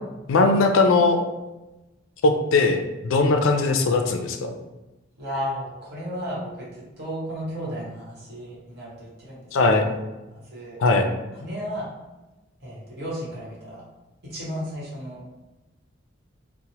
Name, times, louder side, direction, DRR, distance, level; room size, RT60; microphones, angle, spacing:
voice 1, 0.3-1.2 2.2-4.5 9.5-9.9 10.8-11.1, left 3 dB, 75° left, 5 dB, 0.3 m, -19 dB
voice 2, 5.2-9.5 9.8-10.1 10.3-10.8 11.3-11.9 12.6-13.8 14.2-15.3, equal, 55° right, -6 dB, 1.1 m, -34 dB
2.9 x 2.0 x 2.8 m, 1.0 s
head